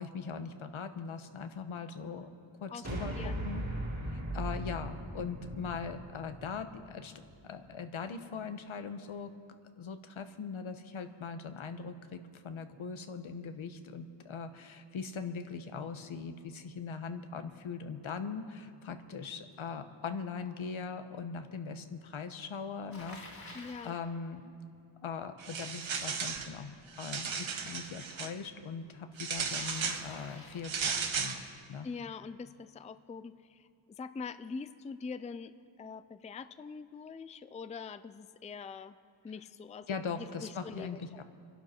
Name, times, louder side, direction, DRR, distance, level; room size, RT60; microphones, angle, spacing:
voice 1, 0.0-2.3 2.6-3.7 4.1-7.1 7.4-9.3 9.8-24.5 25.0-31.9 39.9-41.2, left 5 dB, 85° left, 8 dB, 1.1 m, -41 dB
sound 1, 2.8-7.3, right 1 dB, 35° right, 2.5 m, -39 dB
voice 2, 3.2-3.5 23.5-24.0 31.8-33.7 34.0-39.0 39.2-39.9 40.4-41.2, left 5 dB, 15° left, 13 dB, 0.3 m, -43 dB
Bicycle, 22.9-24.0 29.5-30.8, left 2 dB, 45° left, 2.4 m, -49 dB
sound 2, 25.4-26.5 26.9-28.3 29.2-30.0 30.6-31.4, right 6 dB, 80° right, 1.2 m, -35 dB
27.5 x 11.5 x 4.4 m, 2.5 s
wide cardioid pair, 145°, 47 cm